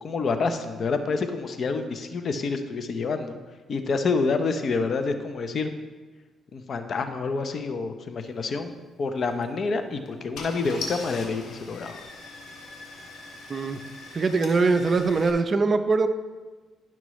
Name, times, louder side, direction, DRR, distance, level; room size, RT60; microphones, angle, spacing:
voice 1, 0.0-3.4 3.7-5.7 6.5-8.7 9.0-12.0, left 4 dB, 50° left, 8 dB, 0.7 m, -28 dB
Car / Engine starting, 9.2-9.5 10.1-10.2 10.3-15.3, left 3 dB, 80° left, 1.6 m, -40 dB
voice 2, 14.1-16.1, right 4 dB, 40° right, 8 dB, 0.6 m, -22 dB
11.0 x 6.0 x 3.1 m, 1.3 s
cardioid pair, 90°, 0 cm